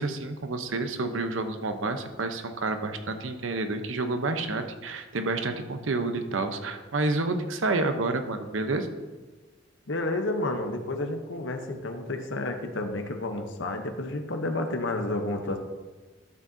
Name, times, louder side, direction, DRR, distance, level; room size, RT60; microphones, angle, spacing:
voice 1, 0.0-8.9, right 3 dB, 90° right, 7 dB, 0.8 m, -29 dB
voice 2, 9.9-15.6, left 2 dB, 70° left, 5 dB, 0.9 m, -30 dB
12.0 x 7.4 x 2.7 m, 1.3 s
head